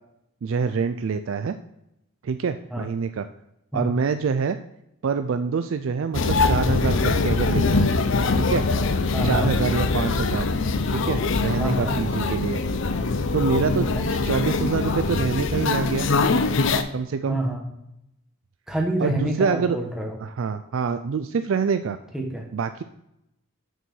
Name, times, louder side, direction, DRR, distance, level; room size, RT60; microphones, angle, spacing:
voice 1, 0.4-1.6 2.2-3.3 3.7-4.6 5.0-7.9 8.3-8.7 9.2-10.5 10.9-12.6 13.3-16.1 16.9-17.4 19.0-19.8 20.2-22.0 22.5-22.8, right 5 dB, 70° right, 10 dB, 0.4 m, -26 dB
sound 1, 6.1-16.8, left 3 dB, 60° left, 0.6 m, -23 dB
voice 2, 9.1-9.6 11.6-12.0 13.7-14.1 17.3-17.6 18.7-20.1 22.1-22.5, right 1 dB, ahead, 1 dB, 1.4 m, -27 dB
6.7 x 4.5 x 6.2 m, 0.84 s
head